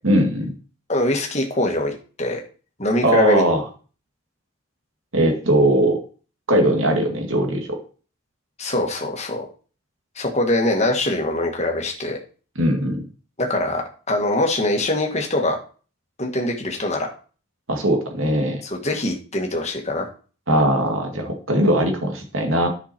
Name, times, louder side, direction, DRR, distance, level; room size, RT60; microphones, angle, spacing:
voice 1, 0.0-0.5 3.0-3.6 5.1-6.0 6.5-7.8 12.6-13.0 17.7-18.6 20.5-22.7, right 1 dB, 65° right, 3 dB, 2.2 m, -19 dB
voice 2, 0.9-1.9 2.2-2.4 2.8-3.4 8.6-9.5 10.2-12.2 13.4-13.8 14.1-15.6 16.2-17.1 18.6-20.1, left 1 dB, 30° left, 2 dB, 1.8 m, -23 dB
10.5 x 6.0 x 4.5 m, 0.38 s
head